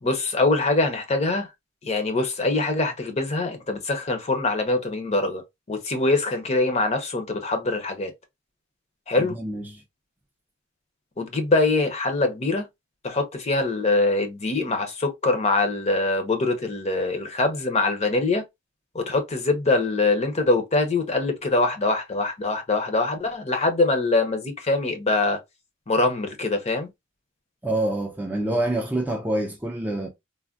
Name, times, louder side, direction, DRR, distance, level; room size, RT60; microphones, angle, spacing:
voice 1, 0.0-1.5 1.8-5.4 5.7-8.1 9.1-9.3 11.2-12.6 13.0-18.4 18.9-25.4 25.9-26.9, left 3 dB, 35° left, 0.6 m, -23 dB
voice 2, 9.2-9.8 27.6-30.1, right 1 dB, 10° right, 0.4 m, -26 dB
3.3 x 2.1 x 2.4 m
head